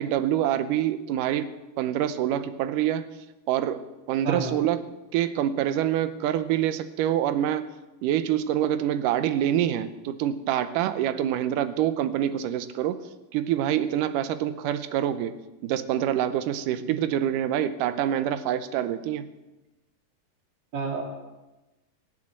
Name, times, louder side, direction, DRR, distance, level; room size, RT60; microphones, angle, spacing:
voice 1, 0.0-1.5 1.8-3.1 3.5-4.9 5.1-7.7 8.0-13.0 13.3-19.3, right 11 dB, 80° right, 13 dB, 2.3 m, -26 dB
voice 2, 20.7-21.0, right 5 dB, 35° right, 0 dB, 2.9 m, -29 dB
19.0 x 8.4 x 7.5 m, 1.1 s
omnidirectional pair, 3.9 m